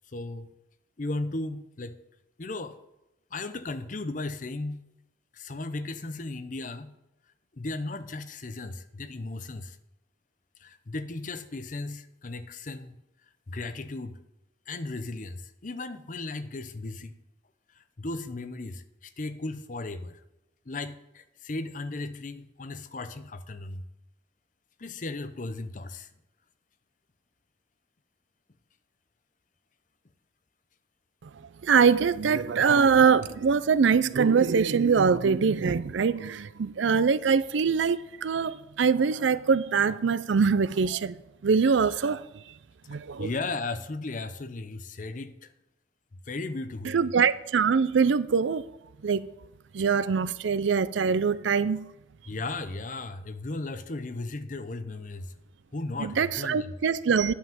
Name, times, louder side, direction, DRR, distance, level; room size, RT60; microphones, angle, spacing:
voice 1, 0.1-0.5 1.0-2.0 2.4-2.8 3.3-4.8 5.3-6.9 7.5-9.8 10.6-13.0 13.5-14.2 14.7-17.1 17.7-20.2 20.7-23.8 24.8-26.1 42.9-45.5 46.3-47.1 52.3-55.3 55.7-56.7, left 2 dB, 40° left, 0.6 m, -36 dB
voice 2, 31.6-42.2 42.9-43.3 46.8-48.6 49.0-49.3 49.7-51.8 56.0-57.3, right 6 dB, 75° right, 0.4 m, -23 dB
10.0 x 5.6 x 7.5 m
head